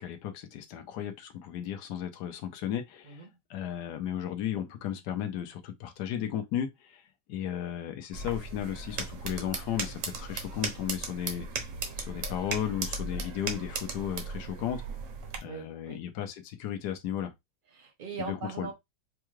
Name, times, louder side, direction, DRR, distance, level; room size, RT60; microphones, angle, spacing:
voice 1, 0.0-7.0 7.3-11.5 12.0-14.8 15.4-17.3 18.2-18.7, left 10 dB, 70° left, 1.3 m, -35 dB
sound 1, 8.1-15.4, right 4 dB, 55° right, 1.0 m, -37 dB
voice 2, 15.4-16.0 17.7-18.7, right 5 dB, 80° right, 0.4 m, -40 dB
4.6 x 2.3 x 3.1 m
omnidirectional pair, 1.9 m